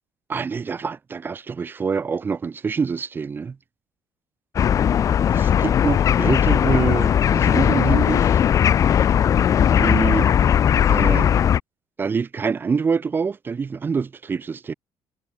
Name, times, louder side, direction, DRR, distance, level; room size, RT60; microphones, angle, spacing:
voice 1, 0.3-3.6 5.3-8.4 9.8-10.3 10.9-11.3 12.0-14.7, right 5 dB, 25° right, 4.6 m, -25 dB
sound 1, 4.6-11.6, left 9 dB, 40° left, 1.5 m, -18 dB
cardioid pair, 160°, 9 cm